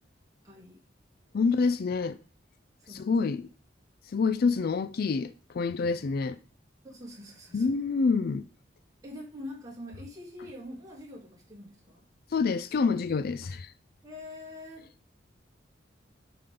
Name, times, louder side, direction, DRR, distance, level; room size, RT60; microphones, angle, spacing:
voice 1, 0.4-0.8 2.8-3.3 6.8-7.7 9.0-12.0 14.0-14.9, left 1 dB, 20° right, 3.0 m, -44 dB
voice 2, 1.3-2.2 2.9-3.5 4.1-6.4 7.5-8.4 12.3-13.7, left 4 dB, 55° left, 0.4 m, -27 dB
11.5 x 5.1 x 3.8 m
head